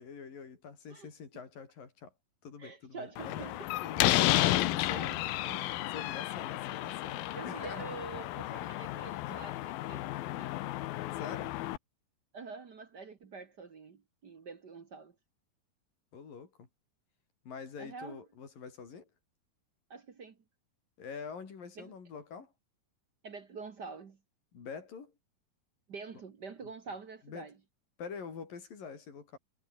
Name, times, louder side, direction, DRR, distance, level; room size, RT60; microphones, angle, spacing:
voice 1, 0.0-2.1 2.4-3.5 3.8-5.2 5.5-7.9 9.3-9.4 11.1-11.6 16.1-16.7 17.5-19.1 21.0-22.5 24.5-25.1 26.6-26.7 27.3-27.5 28.0-29.4, left 6 dB, 70° left, 6.0 m, -45 dB
voice 2, 2.6-3.7 4.0-4.1 4.4-5.6 6.4-6.6 7.3-10.6 12.3-15.1 17.8-18.2 19.9-20.4 21.8-21.9 23.2-24.2 25.9-27.6, right 4 dB, 50° right, 1.2 m, -46 dB
Slam, 3.2-11.8, left 16 dB, 85° left, 2.8 m, -32 dB
omnidirectional pair, 4.1 m